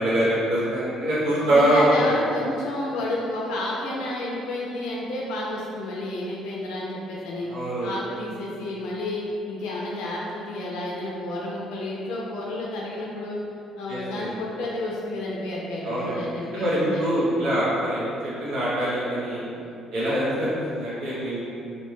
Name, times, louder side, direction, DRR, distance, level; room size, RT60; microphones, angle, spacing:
voice 1, 0.0-2.1 7.5-7.9 13.9-14.2 15.8-16.2 16.5-18.1 18.4-19.4 19.9-21.5, right 1 dB, 80° right, -9 dB, 0.6 m, -24 dB
voice 2, 1.4-7.5 7.8-13.4 13.8-17.6, left 1 dB, 85° left, -4 dB, 0.4 m, -30 dB
2.6 x 2.1 x 3.0 m, 2.7 s
cardioid pair, 90°, 0 cm